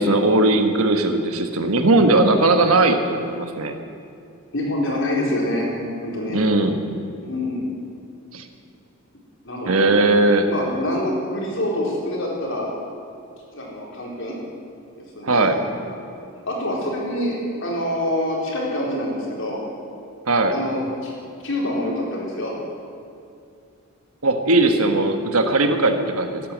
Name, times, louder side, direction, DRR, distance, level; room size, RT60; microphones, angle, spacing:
voice 1, 0.0-3.8 6.3-6.8 8.3-8.4 9.6-10.5 15.2-15.6 20.3-20.6 24.2-26.4, right 2 dB, 75° right, 6 dB, 1.4 m, -18 dB
voice 2, 4.5-5.7 6.0-6.4 7.2-7.7 9.4-9.9 10.5-12.7 13.5-14.4 15.1-15.9 16.5-19.6 20.5-21.1 21.4-22.5 24.7-24.9, left 1 dB, 55° left, -3 dB, 4.2 m, -26 dB
16.0 x 11.0 x 7.5 m, 2.5 s
head